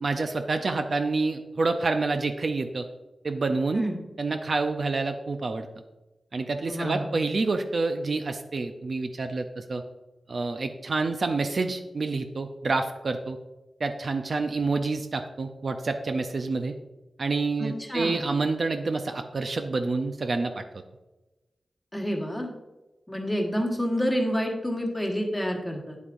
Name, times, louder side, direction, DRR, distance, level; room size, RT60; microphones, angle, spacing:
voice 1, 0.0-2.9 3.2-3.8 4.2-5.7 6.3-9.8 10.3-13.4 13.8-16.7 17.2-20.6, right 3 dB, 50° right, 6 dB, 0.5 m, -28 dB
voice 2, 6.7-7.0 17.6-18.2 21.9-22.5 23.1-26.0, equal, 10° left, 1 dB, 1.3 m, -28 dB
9.0 x 8.2 x 2.5 m, 1.1 s
wide cardioid pair, 140°, 0 cm